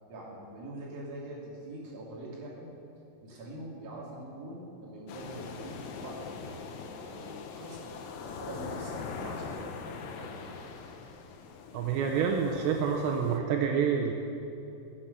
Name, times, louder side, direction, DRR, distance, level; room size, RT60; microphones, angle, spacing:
voice 1, 0.1-2.7 3.2-7.9 8.2-10.5, right 1 dB, 40° right, -5 dB, 3.2 m, -44 dB
sound 1, 5.1-13.4, left 5 dB, 80° left, 2.0 m, -42 dB
voice 2, 11.7-14.1, right 7 dB, 80° right, 2 dB, 2.9 m, -28 dB
15.0 x 7.4 x 6.7 m, 2.9 s
omnidirectional pair, 5.2 m